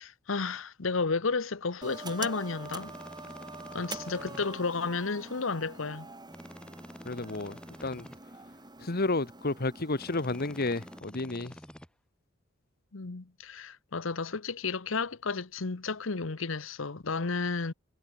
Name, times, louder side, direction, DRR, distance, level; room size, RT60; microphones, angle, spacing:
voice 1, 0.0-2.9 3.7-6.1 12.9-17.7, left 4 dB, 70° left, 1.0 m, -32 dB
sound 1, 1.8-11.0, right 3 dB, 20° right, 5.3 m, -45 dB
sound 2, 2.6-4.5 6.3-8.2 10.0-11.9, equal, 5° left, 1.5 m, -48 dB
voice 2, 7.0-8.1 8.8-11.5, left 2 dB, 50° left, 1.5 m, -31 dB
head